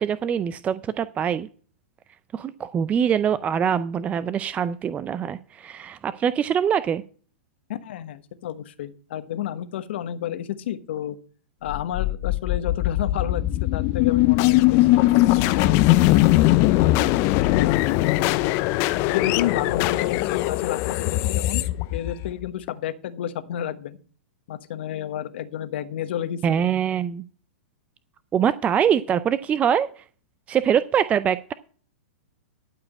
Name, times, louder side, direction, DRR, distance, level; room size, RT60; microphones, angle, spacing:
voice 1, 0.0-1.5 2.3-7.0 26.4-27.2 28.3-30.0 30.5-31.5, right 8 dB, 20° right, 15 dB, 0.4 m, -23 dB
voice 2, 7.7-11.2 11.6-15.8 16.9-18.3 19.1-21.6 21.9-24.0 24.5-26.6, left 10 dB, 65° left, 11 dB, 1.1 m, -31 dB
sound 1, 11.7-22.7, left 17 dB, 40° left, 0.6 m, -20 dB
12.5 x 5.0 x 7.3 m, 0.43 s
hypercardioid pair, 115°, 7 cm